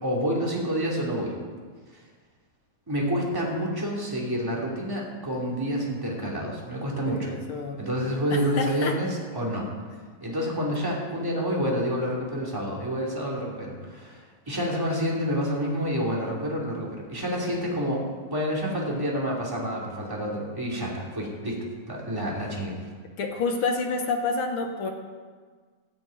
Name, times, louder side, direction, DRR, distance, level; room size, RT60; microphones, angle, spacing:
voice 1, 0.0-1.3 2.9-7.3 7.8-9.7 10.2-21.6 21.9-22.7, equal, 5° right, -3 dB, 2.4 m, -28 dB
voice 2, 7.1-7.8 8.3-8.9 23.2-24.9, left 4 dB, 60° left, 3 dB, 1.6 m, -28 dB
14.0 x 6.9 x 8.9 m, 1.5 s
omnidirectional pair, 3.5 m